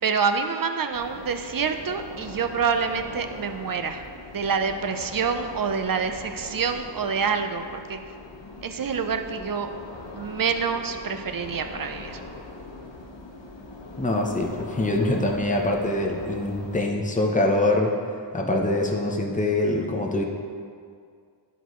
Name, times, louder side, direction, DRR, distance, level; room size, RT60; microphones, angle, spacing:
voice 1, 0.0-4.0 4.3-8.0 8.6-9.7 10.1-12.2, right 6 dB, 50° right, 7 dB, 0.5 m, -27 dB
sound 1, 0.9-16.9, left 2 dB, 75° left, 0.9 m, -41 dB
voice 2, 14.0-17.9 18.3-20.2, left 2 dB, 15° left, 0 dB, 0.8 m, -24 dB
11.5 x 4.0 x 3.1 m, 2.2 s
wide cardioid pair, 55°, 44 cm